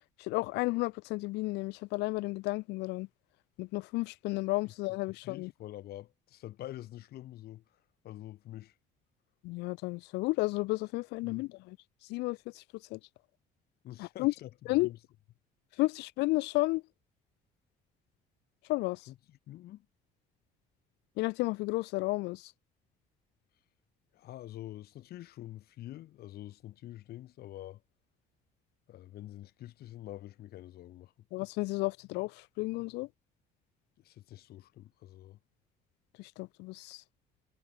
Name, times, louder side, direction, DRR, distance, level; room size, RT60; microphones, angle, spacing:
voice 1, 0.2-3.1 3.6-5.5 9.4-11.8 12.1-12.6 12.9-13.0 14.0-14.3 14.7-14.9 15.8-16.8 18.7-19.0 21.2-22.5 31.3-33.1 36.2-37.0, left 22 dB, 85° left, 0.5 m, -32 dB
voice 2, 5.1-7.6 8.0-8.7 11.2-11.5 13.8-14.5 14.8-15.0 19.1-19.8 24.1-27.8 28.9-31.1 34.0-35.4, left 14 dB, 65° left, 1.4 m, -46 dB
cardioid pair, 110°, 17 cm